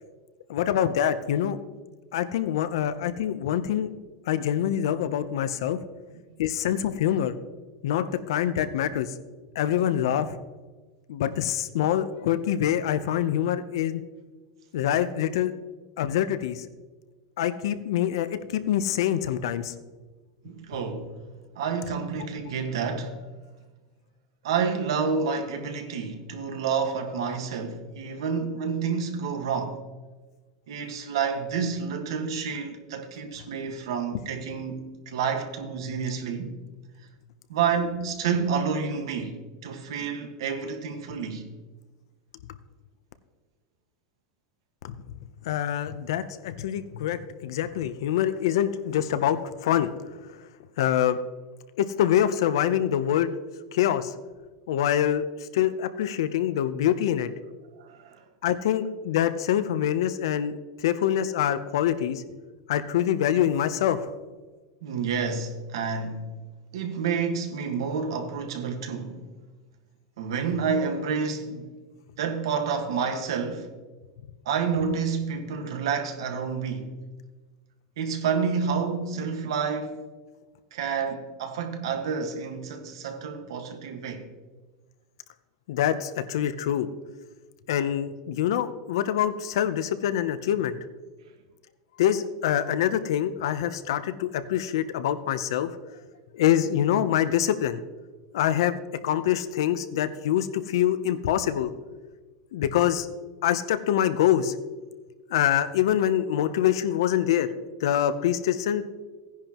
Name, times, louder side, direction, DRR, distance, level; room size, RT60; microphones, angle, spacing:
voice 1, 0.5-1.6 2.1-3.9 4.3-5.8 6.4-7.3 7.8-9.1 9.6-10.4 11.1-14.0 14.7-15.5 16.0-16.6 17.4-19.7 44.8-44.9 45.5-49.9 50.8-51.2 51.8-53.3 53.7-54.1 54.7-55.2 55.5-57.3 58.4-60.5 60.8-62.2 62.7-64.0 85.7-86.9 87.7-90.8 92.0-95.7 96.3-97.8 98.3-101.7 102.5-103.1 103.4-104.5 105.3-107.5 107.8-108.8, left 10 dB, 70° left, 0.7 m, -25 dB
voice 2, 20.4-21.2 21.5-23.2 24.4-29.8 30.7-36.5 37.5-41.5 57.8-58.2 64.8-66.3 66.7-69.3 70.2-71.7 72.2-73.7 74.4-76.9 78.0-80.0 80.7-84.3, right 6 dB, 85° right, 1.6 m, -29 dB
16.0 x 10.5 x 3.0 m
supercardioid pair, 180°, 3 cm